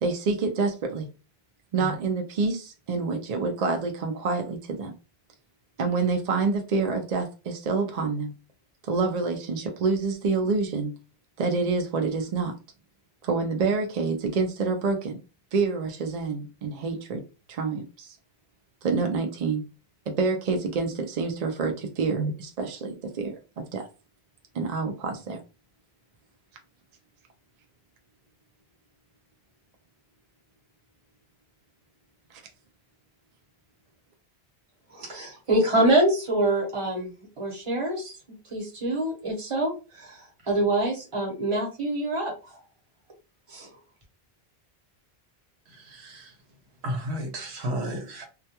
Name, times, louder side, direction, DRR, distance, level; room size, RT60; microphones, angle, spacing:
voice 1, 0.0-1.1 1.7-4.9 5.8-8.3 8.8-10.9 11.4-12.5 13.2-15.2 15.5-17.2 17.5-18.2 18.8-19.6 20.2-23.3 23.7-23.9 24.5-25.4 32.3-32.4, right 4 dB, 55° right, 4 dB, 0.4 m, -27 dB
voice 2, 34.9-37.1 37.4-38.1 38.5-42.3 43.5-43.7, right 1 dB, 30° right, -1 dB, 0.9 m, -25 dB
voice 3, 45.7-46.3 46.8-48.3, equal, 85° right, 4 dB, 1.0 m, -33 dB
2.3 x 2.2 x 2.8 m, 0.31 s
omnidirectional pair, 1.1 m